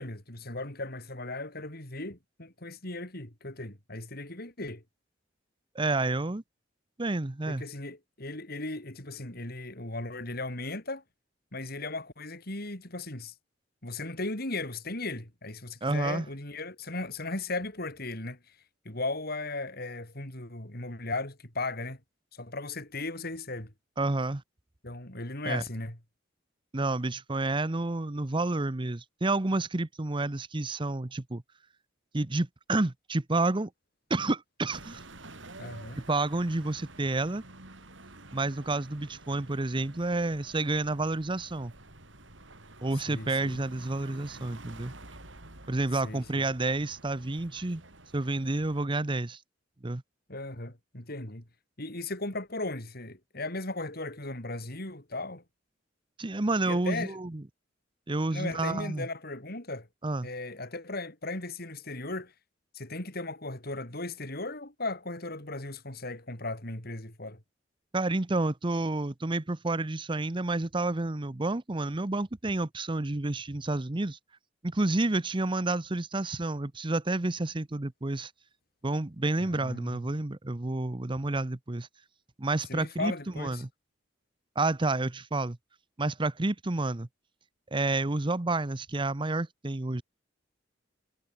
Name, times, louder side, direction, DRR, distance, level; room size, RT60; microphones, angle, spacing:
voice 1, 0.0-4.8 7.5-11.0 11.5-13.3 13.8-18.4 18.9-22.0 22.3-23.7 24.8-26.0 35.6-36.0 43.1-43.6 46.0-46.4 50.3-51.5 51.8-55.4 56.6-57.2 58.3-59.9 60.2-62.3 62.7-67.4 79.4-80.1 82.7-83.6, left 2 dB, 55° left, 5.3 m, -37 dB
voice 2, 5.7-6.4 7.0-7.6 15.8-16.3 24.0-24.4 25.5-25.6 26.7-31.4 32.1-33.7 34.1-35.0 36.0-37.4 38.3-41.7 42.8-44.9 45.7-47.8 48.1-49.4 49.8-50.0 56.2-57.4 58.1-59.1 60.0-60.3 67.9-74.2 74.6-78.3 78.8-81.9 82.4-83.7 84.6-85.6 86.0-87.1 87.7-90.0, right 2 dB, 25° right, 0.8 m, -30 dB
sound 1, 34.7-48.9, right 2 dB, 75° right, 6.8 m, -50 dB
head